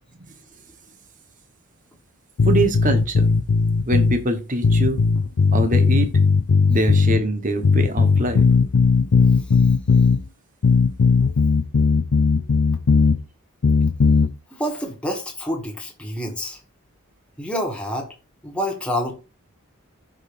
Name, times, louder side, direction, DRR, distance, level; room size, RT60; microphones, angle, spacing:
sound 1, 2.4-4.2 4.6-7.2 7.6-10.2 10.6-13.2 13.6-14.3, left 4 dB, 70° left, 0.5 m, -17 dB
voice 1, 2.4-3.3 3.9-5.0 5.5-6.1 6.7-8.4, right 1 dB, 35° right, 1.2 m, -23 dB
voice 2, 14.5-16.6 17.4-18.1 18.4-19.1, equal, 5° left, 1.4 m, -27 dB
15.0 x 5.2 x 2.6 m
head